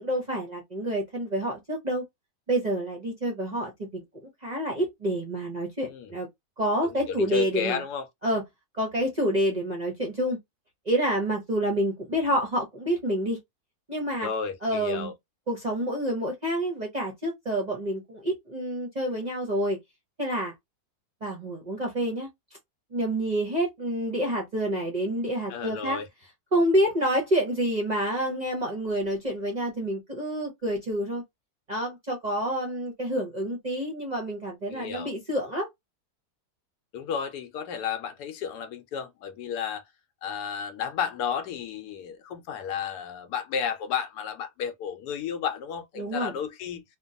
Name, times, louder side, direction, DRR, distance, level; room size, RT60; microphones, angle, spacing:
voice 1, 0.0-2.0 2.5-6.3 6.6-7.8 8.2-8.4 8.7-10.4 10.9-13.4 13.9-14.3 14.6-15.1 15.5-19.8 20.2-20.5 21.2-22.3 22.9-26.0 26.5-31.2 31.7-35.7 46.0-46.3, right 1 dB, 45° right, 0.5 m, -28 dB
voice 2, 6.8-8.1 14.2-15.1 25.5-26.1 34.7-35.1 36.9-39.8 40.2-46.8, left 7 dB, 85° left, 1.1 m, -32 dB
2.9 x 2.2 x 2.6 m
omnidirectional pair, 1.7 m